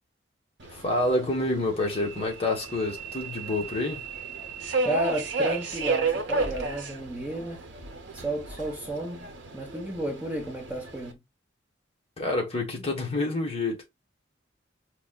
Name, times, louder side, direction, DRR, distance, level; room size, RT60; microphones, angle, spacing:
Subway metro underground, 0.6-11.1, right 4 dB, 60° right, 0.8 m, -33 dB
voice 1, 0.7-4.0 12.2-14.0, left 2 dB, 30° left, 1.1 m, -28 dB
voice 2, 4.8-7.6 8.1-11.2 12.8-12.9, right 1 dB, 10° right, 0.9 m, -32 dB
5.0 x 2.8 x 2.3 m
head